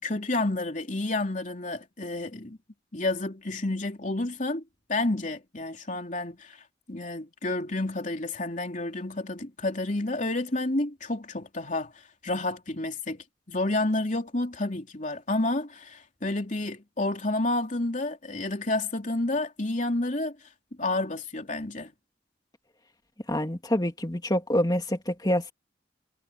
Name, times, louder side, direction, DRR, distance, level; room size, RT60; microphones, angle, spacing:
voice 1, 0.0-2.6 2.9-4.6 4.9-6.6 6.9-11.9 12.2-20.4 20.8-21.9, left 2 dB, 40° left, 3.3 m, -30 dB
voice 2, 23.3-25.5, equal, 20° left, 2.3 m, -26 dB
head